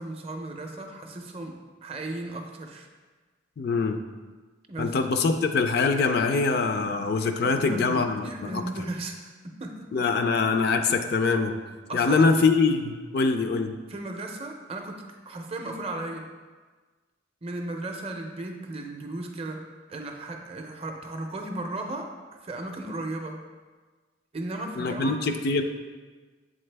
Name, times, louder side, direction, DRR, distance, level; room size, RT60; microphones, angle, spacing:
voice 1, 0.0-2.9 4.7-4.9 7.4-10.1 11.9-12.3 13.9-16.3 17.4-19.6 19.9-22.1 22.4-23.4 24.3-25.1, right 2 dB, 30° right, 3 dB, 0.5 m, -35 dB
voice 2, 3.6-4.0 4.8-8.6 9.9-11.6 11.9-13.8 24.8-25.6, left 4 dB, 55° left, 7 dB, 0.4 m, -24 dB
7.6 x 3.9 x 3.3 m, 1.4 s
head